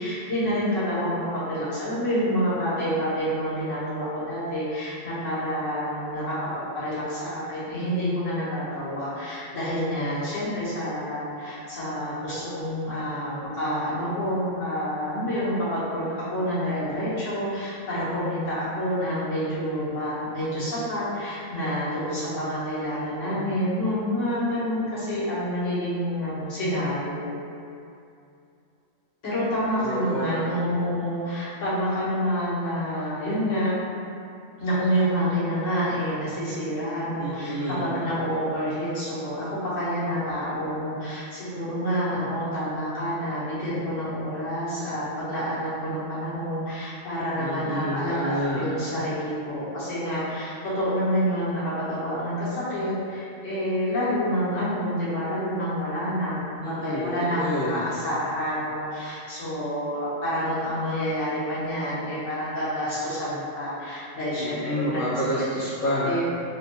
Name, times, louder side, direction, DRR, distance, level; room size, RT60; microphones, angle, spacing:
voice 1, 0.0-27.3 29.2-33.7 34.6-57.4 57.7-65.0 66.0-66.2, equal, 85° left, -11 dB, 1.5 m, -28 dB
voice 2, 29.7-30.5 37.2-37.9 47.4-48.6 56.6-57.8 64.4-66.1, equal, 50° left, -9 dB, 0.8 m, -29 dB
3.9 x 2.2 x 2.8 m, 2.5 s
omnidirectional pair, 1.3 m